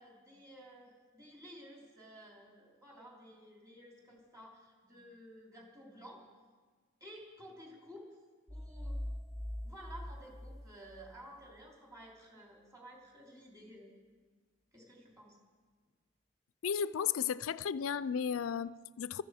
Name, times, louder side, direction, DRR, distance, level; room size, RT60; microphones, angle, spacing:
voice 1, 0.0-6.2 7.0-8.0 8.5-9.0 9.6-13.9 14.7-15.3, equal, 15° right, 3.4 m, -53 dB
sound 1, 8.5-11.2, left 1 dB, ahead, 0.4 m, -42 dB
voice 2, 16.6-19.2, left 7 dB, 85° left, 0.4 m, -34 dB
21.0 x 14.0 x 4.9 m
head